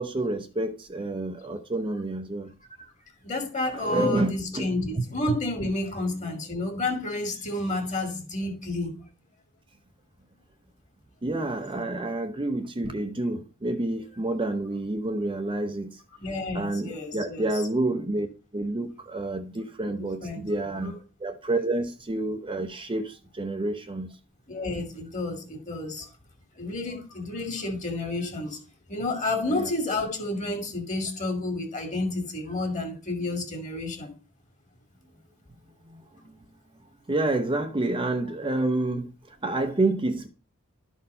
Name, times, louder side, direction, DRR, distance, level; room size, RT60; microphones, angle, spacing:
voice 1, 0.0-2.5 3.7-4.7 5.3-5.4 11.2-16.0 16.5-18.3 18.5-20.9 21.2-24.1 29.5-29.7 35.9-36.0 36.3-36.4 37.1-40.3, right 2 dB, 25° right, 0.7 m, -29 dB
voice 2, 3.2-8.9 16.2-17.5 20.2-20.4 20.8-20.9 24.5-26.1 26.6-28.6 28.9-34.1, left 2 dB, 35° left, 2.3 m, -30 dB
12.0 x 4.3 x 5.4 m
head